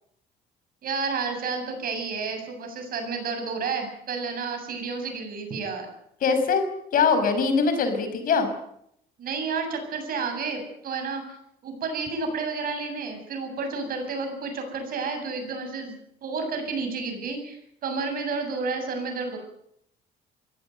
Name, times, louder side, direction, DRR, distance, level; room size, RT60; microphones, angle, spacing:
voice 1, 0.8-5.9 9.2-11.2 11.6-19.4, right 4 dB, 60° right, 5 dB, 7.8 m, -31 dB
voice 2, 6.2-6.6 6.9-8.5, left 5 dB, 55° left, 8 dB, 5.7 m, -22 dB
22.5 x 17.0 x 9.3 m, 0.75 s
cardioid pair, 110°, 17 cm